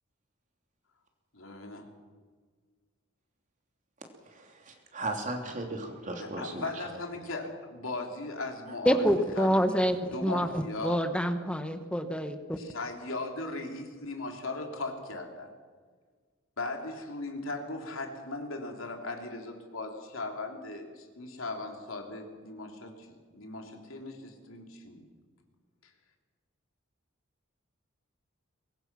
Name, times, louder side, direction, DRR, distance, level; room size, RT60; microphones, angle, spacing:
voice 1, 1.3-1.9 6.2-9.0 9.3-9.6 10.1-11.0 12.6-15.5 16.6-25.0, left 2 dB, 70° left, 2 dB, 3.4 m, -38 dB
voice 2, 4.3-6.8, right 2 dB, 35° right, 2 dB, 3.0 m, -37 dB
voice 3, 8.8-12.6, equal, 5° left, 8 dB, 1.1 m, -27 dB
23.5 x 21.0 x 6.1 m, 1.5 s
head